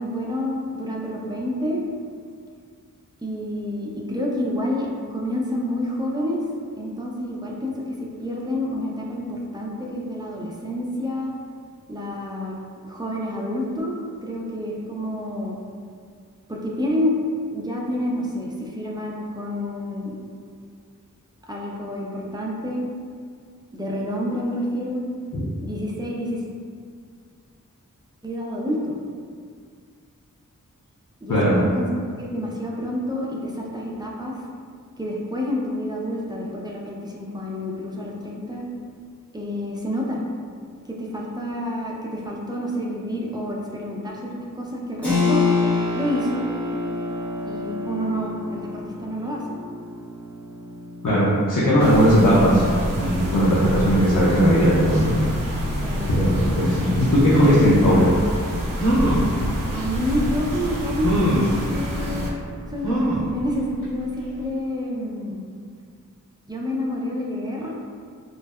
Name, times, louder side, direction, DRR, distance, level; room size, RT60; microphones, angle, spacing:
voice 1, 0.0-1.8 3.2-6.4 6.8-11.3 11.9-12.6 12.8-13.9 14.2-15.6 16.5-17.1 17.4-20.2 21.5-22.9 23.7-25.0 25.6-26.4 28.2-28.9 31.2-31.9 32.2-34.4 35.0-38.6 39.3-40.2 40.9-45.4 45.9-46.5 47.5-49.4 55.8-56.1 59.7-62.4 62.7-65.4 66.5-67.7, left 1 dB, 15° right, -3 dB, 0.3 m, -28 dB
voice 2, 31.3-31.6 51.0-52.6 53.0-55.1 56.1-58.1, equal, 70° left, -9 dB, 0.5 m, -18 dB
Keyboard (musical), 45.0-55.4, left 3 dB, 5° left, 1.2 m, -29 dB
sound 1, 51.8-62.3, equal, 80° right, 0.5 m, -27 dB
sound 2, 58.7-59.3 60.1-60.2 61.0-61.5 62.8-63.3 63.8-63.9 64.2-64.3, right 1 dB, 40° left, 1.3 m, -21 dB
2.6 x 2.1 x 2.3 m, 2.1 s
wide cardioid pair, 75°, 33 cm